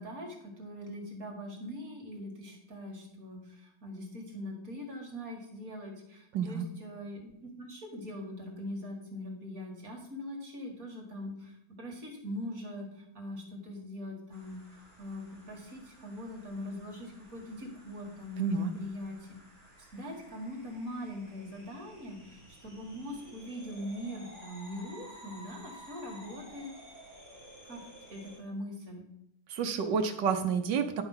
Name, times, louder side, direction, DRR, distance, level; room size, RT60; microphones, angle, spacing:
voice 1, 0.0-19.3 19.9-26.7 27.6-27.8 28.1-29.0, left 1 dB, 45° right, 0 dB, 2.0 m, -42 dB
voice 2, 6.3-6.7 18.4-18.7 29.5-31.0, right 6 dB, 65° right, 6 dB, 1.4 m, -29 dB
sound 1, 14.3-28.4, equal, 5° left, 3.0 m, -53 dB
9.8 x 5.8 x 5.6 m, 0.78 s
omnidirectional pair, 2.3 m